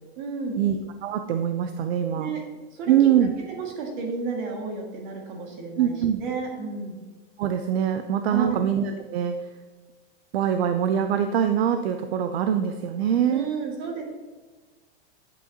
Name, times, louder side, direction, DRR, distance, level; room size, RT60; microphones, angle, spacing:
voice 1, 0.2-0.6 2.2-2.4 2.7-2.9 3.5-5.9 6.2-7.0 8.3-8.6 13.3-14.0, right 4 dB, 45° right, 1 dB, 2.0 m, -32 dB
voice 2, 1.0-2.3 2.9-3.3 5.8-6.2 7.4-9.4 10.3-13.5, right 9 dB, 65° right, 7 dB, 0.6 m, -23 dB
9.0 x 8.4 x 2.9 m, 1.3 s
supercardioid pair, 175°, 33 cm